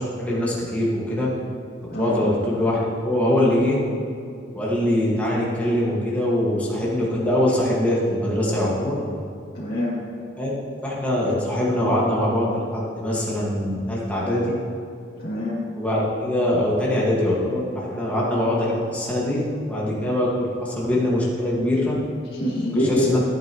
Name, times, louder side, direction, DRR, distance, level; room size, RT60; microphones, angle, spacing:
voice 1, 0.2-1.3 2.0-3.8 4.5-8.9 10.4-10.5 10.8-14.5 15.8-19.4 19.7-22.0 22.7-23.2, left 1 dB, 10° left, -6 dB, 1.7 m, -23 dB
voice 2, 1.9-2.3 9.5-10.0 15.2-15.6 22.3-23.2, left 1 dB, 50° left, -11 dB, 2.4 m, -25 dB
14.5 x 8.7 x 3.0 m, 2.5 s
head